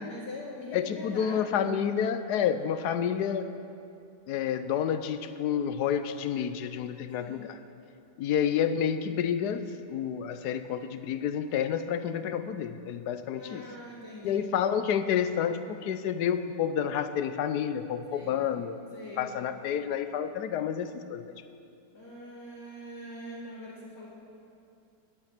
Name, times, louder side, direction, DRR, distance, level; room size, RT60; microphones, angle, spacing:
voice 1, 0.0-1.4 7.2-7.5 13.3-14.4 18.1-18.4 18.9-19.3 21.9-24.1, left 1 dB, 55° left, -10 dB, 2.7 m, -43 dB
voice 2, 0.7-3.5 4.3-7.6 8.2-13.6 14.2-18.8 19.2-21.2, left 8 dB, 75° left, 10 dB, 1.2 m, -29 dB
11.0 x 8.5 x 8.8 m, 2.6 s
omnidirectional pair, 1.8 m